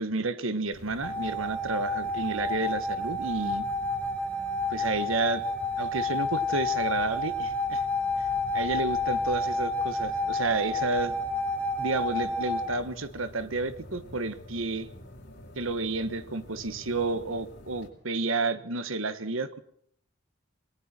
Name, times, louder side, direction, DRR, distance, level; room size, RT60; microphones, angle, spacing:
voice 1, 0.0-3.7 4.7-5.4 5.8-7.8 8.2-8.3 8.5-11.1 11.8-14.9 15.5-19.6, right 3 dB, 80° right, 12 dB, 1.5 m, -31 dB
sound 1, 0.7-17.9, left 1 dB, 55° left, 6.1 m, -47 dB
sound 2, 1.0-12.7, left 2 dB, 5° left, 1.4 m, -30 dB
28.0 x 21.0 x 4.5 m, 0.67 s
head